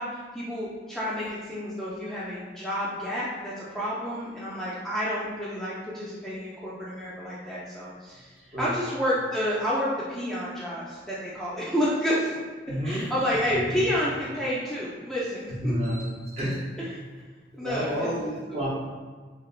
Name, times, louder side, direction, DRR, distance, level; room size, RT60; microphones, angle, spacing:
voice 1, 0.0-12.3 12.7-15.7 16.8-17.0 17.6-18.1 18.5-18.6, equal, ahead, -8 dB, 0.3 m, -30 dB
voice 2, 12.7-13.0 13.5-13.8 15.6-16.6 17.6-18.7, equal, 35° right, -4 dB, 0.6 m, -29 dB
3.1 x 2.9 x 2.4 m, 1.5 s
head